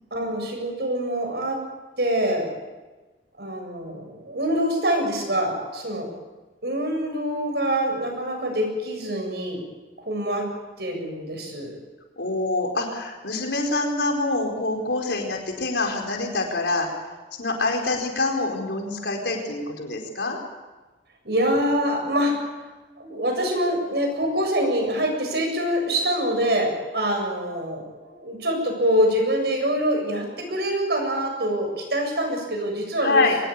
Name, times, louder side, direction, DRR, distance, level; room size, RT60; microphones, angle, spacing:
voice 1, 0.1-1.6 2.0-2.5 3.4-6.1 6.6-9.6 10.0-10.5 10.8-11.8 21.2-22.3 23.0-33.3, equal, 70° right, 3 dB, 7.4 m, -25 dB
voice 2, 12.2-16.9 17.4-20.4 33.0-33.4, left 2 dB, 80° left, 2 dB, 4.6 m, -25 dB
24.0 x 19.0 x 8.6 m, 1.2 s
head